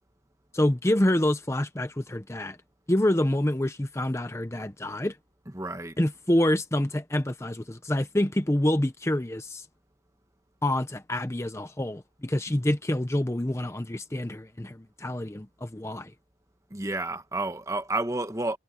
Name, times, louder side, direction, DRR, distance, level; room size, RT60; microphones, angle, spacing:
voice 1, 0.5-2.6 2.9-5.2 6.0-9.6 10.6-16.1, left 1 dB, 15° left, 0.7 m, -27 dB
voice 2, 5.5-6.0 16.7-18.6, right 2 dB, 20° right, 1.3 m, -30 dB
head